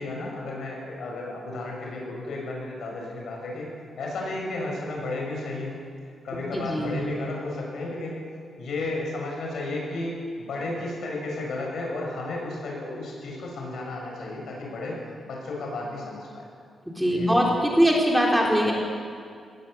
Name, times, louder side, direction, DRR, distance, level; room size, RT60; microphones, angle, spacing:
voice 1, 0.0-3.7 4.0-5.8 6.2-8.2 8.6-16.4 17.1-17.3, left 2 dB, 75° left, -1 dB, 7.5 m, -33 dB
voice 2, 6.5-7.0 16.9-18.7, equal, ahead, -2 dB, 3.7 m, -22 dB
18.5 x 18.5 x 8.5 m, 2.2 s
wide cardioid pair, 120°, 0 cm